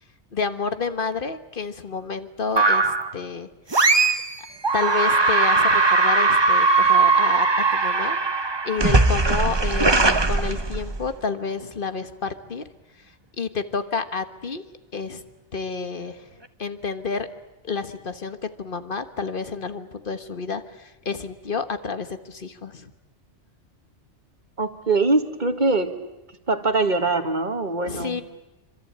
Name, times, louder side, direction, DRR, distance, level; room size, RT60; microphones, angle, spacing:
voice 1, 0.3-3.5 4.7-7.5 7.7-8.2 8.6-12.6 13.4-14.6 14.9-15.2 15.5-16.2 16.6-17.3 17.6-22.9 27.9-28.2, left 5 dB, 50° left, 10 dB, 1.6 m, -30 dB
sound 1, 2.6-3.1 3.7-4.3 4.6-11.1, right 3 dB, 25° right, 1.1 m, -19 dB
voice 2, 24.6-25.9 26.5-28.2, right 3 dB, 40° right, 8 dB, 1.9 m, -22 dB
26.0 x 26.0 x 8.8 m, 0.94 s
omnidirectional pair, 1.2 m